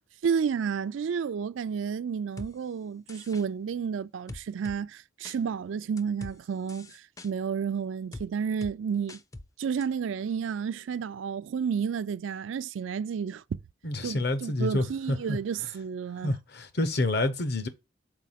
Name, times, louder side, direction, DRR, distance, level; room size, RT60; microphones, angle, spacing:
voice 1, 0.2-9.2 9.6-13.6 14.0-16.3, right 6 dB, 90° right, 0.4 m, -31 dB
sound 1, 2.4-2.5 3.1-3.4 4.3-4.8 5.2-5.4 6.0-6.4 6.7-7.3 8.1-8.3 8.6-8.7 9.1-9.5 9.8-9.9, left 2 dB, 20° left, 0.4 m, -42 dB
voice 2, 13.8-15.4 16.2-17.7, left 2 dB, 60° left, 0.8 m, -28 dB
4.6 x 4.2 x 5.7 m
head